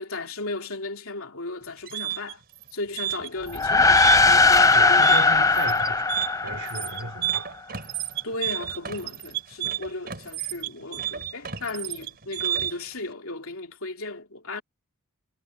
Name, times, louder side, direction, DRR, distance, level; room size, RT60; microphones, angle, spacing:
voice 1, 0.0-2.4 2.7-5.5 8.2-14.6, left 2 dB, 65° left, 3.3 m, -35 dB
sound 1, 1.6-12.9, right 11 dB, 45° right, 4.5 m, -31 dB
sound 2, 3.5-7.2, left 3 dB, 15° left, 0.5 m, -19 dB
voice 2, 4.6-6.1 6.4-7.6, right 2 dB, 75° right, 5.2 m, -35 dB
head